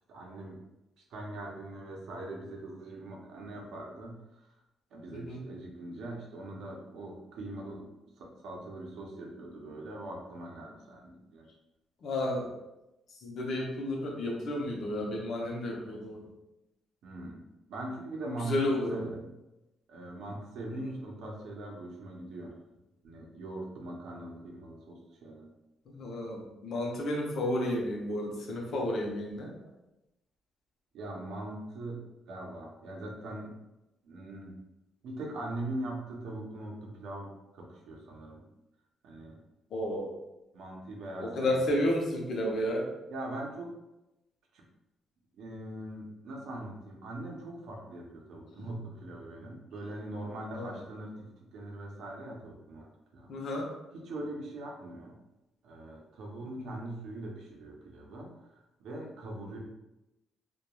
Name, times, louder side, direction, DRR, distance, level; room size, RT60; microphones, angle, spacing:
voice 1, 0.1-0.6 1.1-4.5 4.9-11.5 17.0-19.3 19.9-22.5 23.0-25.5 30.9-33.6 34.0-34.5 35.0-38.4 39.0-39.4 40.5-41.7 43.1-43.7 44.5-44.6 45.4-52.9 53.1-53.3 53.9-55.1 55.6-59.6, right 1 dB, 80° right, 0 dB, 0.6 m, -41 dB
voice 2, 12.0-12.5 13.2-16.3 18.5-19.1 20.7-20.9 25.9-29.5 39.7-40.1 41.2-42.9 48.6-48.7 50.5-50.7 53.3-53.7 56.6-56.7, left 1 dB, 65° left, -1 dB, 0.6 m, -32 dB
2.9 x 2.2 x 2.2 m, 0.96 s
cardioid pair, 90°, 0 cm